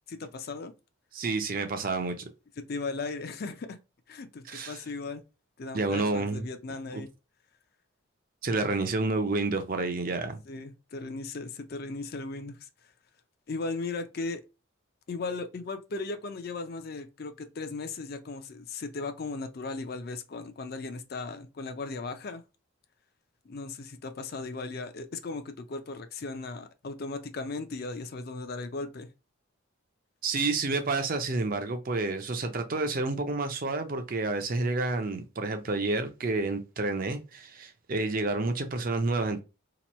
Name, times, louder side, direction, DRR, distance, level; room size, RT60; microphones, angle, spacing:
voice 1, 0.1-0.7 2.6-3.8 4.1-5.2 5.6-7.1 10.5-12.7 13.5-14.4 15.1-22.4 23.5-29.1, left 3 dB, 45° left, 0.4 m, -37 dB
voice 2, 1.1-2.3 4.5-4.8 5.7-6.5 6.9-7.0 8.4-10.4 30.2-39.4, right 3 dB, 40° right, 0.5 m, -29 dB
2.9 x 2.2 x 4.1 m
head